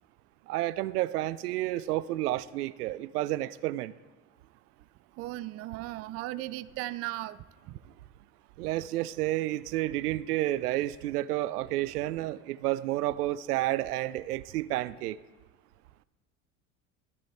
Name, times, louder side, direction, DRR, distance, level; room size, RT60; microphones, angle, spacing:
voice 1, 0.5-3.9 8.6-15.2, right 15 dB, 85° right, 17 dB, 0.6 m, -30 dB
voice 2, 5.2-7.4 7.7-7.8, right 17 dB, 35° right, 15 dB, 0.4 m, -36 dB
13.5 x 7.6 x 4.3 m, 1.2 s
hypercardioid pair, 90°, 45 cm